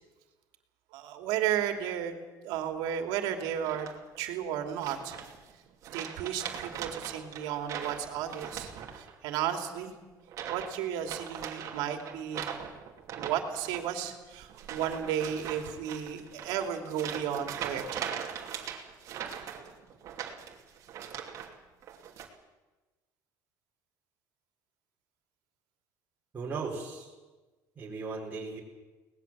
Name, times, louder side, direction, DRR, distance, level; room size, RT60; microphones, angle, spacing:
voice 1, 0.9-2.1 2.4-3.9 4.2-5.2 5.9-8.7 9.0-9.9 10.5-12.6 13.2-18.0, right 9 dB, 80° right, 5 dB, 2.8 m, -33 dB
sound 1, 3.6-4.2 4.8-5.5 5.8-9.3 9.5-9.9 10.3-10.7 11.0-21.5 21.8-22.3, right 8 dB, 45° right, 2.7 m, -40 dB
voice 2, 26.3-27.1 27.8-28.6, right 4 dB, 25° right, -3 dB, 4.4 m, -37 dB
23.5 x 19.5 x 7.5 m, 1.2 s
cardioid pair, 150°, 7 cm